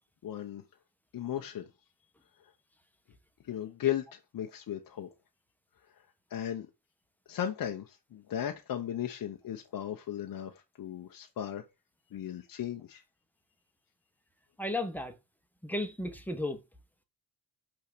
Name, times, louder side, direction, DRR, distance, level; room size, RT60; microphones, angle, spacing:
voice 1, 0.2-0.6 1.1-1.7 3.4-5.1 6.3-6.7 7.3-10.5 10.8-11.6 12.1-13.0, left 10 dB, 45° left, 0.9 m, -36 dB
voice 2, 14.6-15.2 15.6-16.6, left 1 dB, 5° left, 1.1 m, -34 dB
5.8 x 3.8 x 6.1 m
cardioid pair, 120°, 46 cm